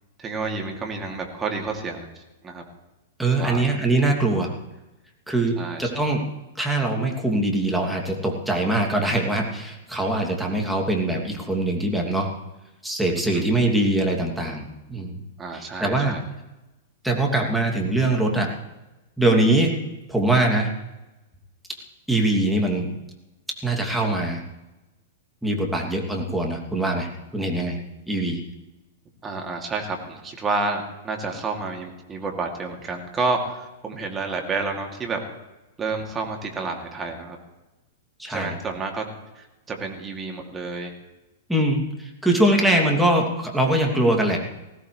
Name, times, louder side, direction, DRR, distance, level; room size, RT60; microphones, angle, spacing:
voice 1, 0.2-2.1 2.4-2.6 3.3-3.6 5.6-6.0 13.2-13.5 15.4-16.2 29.2-35.2 35.8-37.4 38.3-39.0 39.4-40.9 42.6-42.8, right 3 dB, 20° right, 2 dB, 2.9 m, -30 dB
voice 2, 3.2-4.5 5.3-6.2 6.6-12.3 12.8-15.2 15.5-16.2 17.0-18.5 19.2-19.7 20.1-20.7 22.1-22.9 23.6-24.4 25.4-27.8 28.1-28.4 38.2-38.6 41.5-44.4, right 1 dB, ahead, -1 dB, 2.9 m, -22 dB
20.5 x 16.5 x 3.4 m, 1.0 s
figure-of-eight pair, 100°, 0 cm